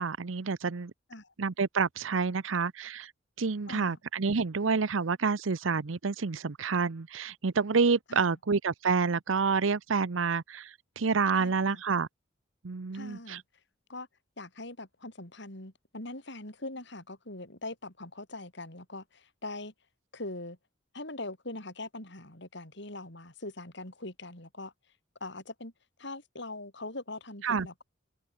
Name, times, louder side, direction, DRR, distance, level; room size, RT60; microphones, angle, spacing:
voice 1, 0.0-0.9 1.4-3.1 3.4-12.1 12.6-13.4 27.4-27.7, right 5 dB, 90° right, 0.7 m, -28 dB
voice 2, 3.7-4.0 8.1-8.4 11.3-11.8 12.9-13.4 13.9-14.1 14.4-19.7 20.1-20.6 20.9-24.7 25.2-25.7 26.0-27.8, left 2 dB, 65° left, 6.9 m, -42 dB
open air
head